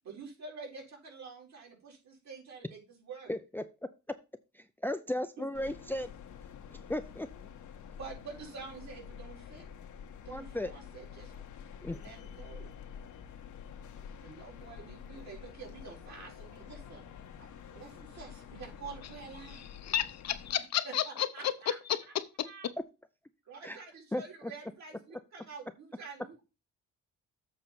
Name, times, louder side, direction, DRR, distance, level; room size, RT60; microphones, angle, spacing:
voice 1, 0.0-3.3 5.4-5.5 8.0-9.6 10.2-11.3 11.9-12.7 14.2-17.1 17.4-19.7 20.8-21.7 22.4-22.7 23.4-26.4, right 5 dB, 65° right, 4.4 m, -47 dB
voice 2, 3.3-3.6 4.5-6.1 6.9-7.5 10.3-10.7 11.8-12.0 23.6-23.8 24.1-24.5, left 1 dB, 5° left, 0.6 m, -35 dB
sound 1, 5.5-20.5, left 7 dB, 75° left, 1.3 m, -48 dB
voice 3, 19.4-21.5 21.9-22.7, left 10 dB, 60° left, 0.9 m, -33 dB
7.8 x 4.2 x 6.8 m
cardioid pair, 90°, 30 cm